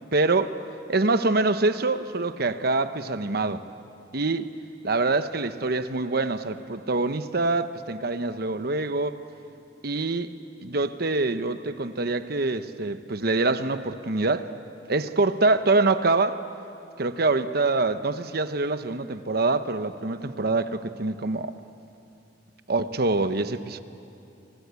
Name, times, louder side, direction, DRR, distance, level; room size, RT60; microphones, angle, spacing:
voice 1, 0.1-0.5 0.9-3.6 4.1-4.5 4.8-9.2 9.8-10.3 10.6-14.5 14.9-16.4 17.0-21.5 22.7-23.8, right 3 dB, 60° right, 10 dB, 1.0 m, -25 dB
29.5 x 24.0 x 8.3 m, 2.7 s
head